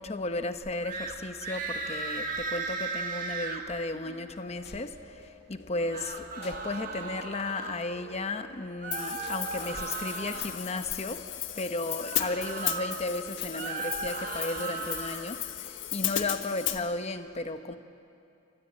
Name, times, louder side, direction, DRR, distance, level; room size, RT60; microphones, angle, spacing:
voice 1, 0.0-11.2 11.5-17.8, left 2 dB, 35° left, 8 dB, 0.9 m, -34 dB
sound 1, 0.8-1.1 1.4-3.6 5.7-7.8 8.8-10.6 12.0-13.0 13.4-15.3, right 4 dB, 45° right, 1.8 m, -36 dB
sound 2, 4.1-16.2, left 3 dB, 60° left, 1.9 m, -51 dB
Hi-hat, 8.9-16.8, left 12 dB, 85° left, 1.3 m, -35 dB
29.0 x 13.0 x 8.6 m, 2.6 s
head